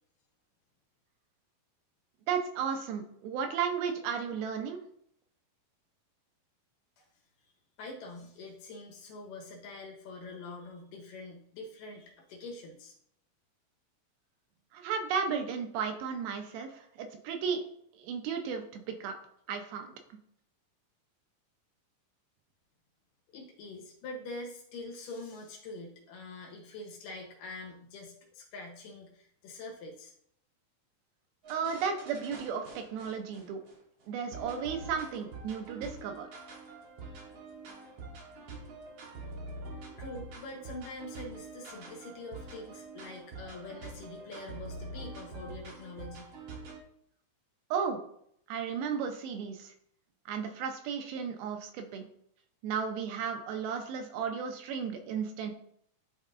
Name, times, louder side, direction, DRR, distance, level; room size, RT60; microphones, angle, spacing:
voice 1, 2.3-4.8 14.7-17.6 18.0-18.6 19.0-19.1 19.5-19.9 31.5-33.6 34.1-36.3 47.7-48.0 48.5-49.7 50.3-52.1 52.6-55.5, right 6 dB, 85° right, 5 dB, 2.6 m, -34 dB
voice 2, 7.8-12.9 23.3-30.1 40.0-46.3, left 2 dB, 70° left, -1 dB, 2.7 m, -44 dB
sound 1, 31.4-33.7 34.3-46.8, right 3 dB, 70° right, 1.5 m, -46 dB
11.0 x 3.7 x 2.5 m, 0.69 s
omnidirectional pair, 4.2 m